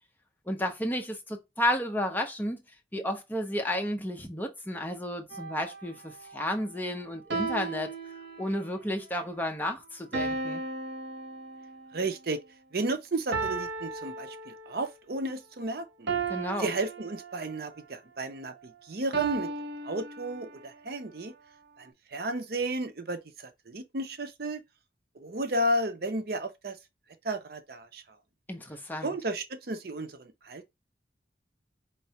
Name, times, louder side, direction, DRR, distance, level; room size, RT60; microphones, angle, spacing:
voice 1, 0.5-2.6 2.9-7.9 8.4-10.6 16.3-16.7 28.5-29.1, left 1 dB, 10° left, 0.7 m, -32 dB
sound 1, 5.3-5.8 7.3-8.8 10.1-12.0 13.3-14.9 16.1-17.7 19.1-20.7, right 3 dB, 85° right, 0.9 m, -35 dB
voice 2, 11.9-12.4 12.7-16.1 16.6-19.5 19.8-21.3 21.8-24.6 25.2-26.8 27.2-28.0 29.0-30.7, right 1 dB, 60° right, 0.6 m, -33 dB
4.5 x 3.1 x 2.9 m
head